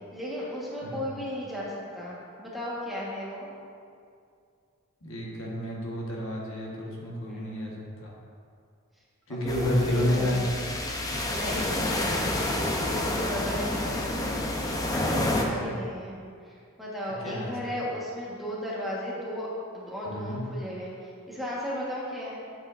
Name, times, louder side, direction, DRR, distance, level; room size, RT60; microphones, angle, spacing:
voice 1, 0.1-3.5 7.3-7.7 9.3-10.5 11.3-12.4 12.9-16.2 16.4-19.5 19.7-20.9 21.3-22.4, equal, ahead, -7 dB, 1.2 m, -35 dB
voice 2, 5.0-8.2 9.3-10.4 15.3-15.8 17.2-17.7 20.1-20.4, left 1 dB, 65° left, -3 dB, 1.3 m, -30 dB
sound 1, 9.5-15.4, left 1 dB, 15° left, 0.6 m, -29 dB
8.8 x 7.3 x 2.5 m, 2.3 s
head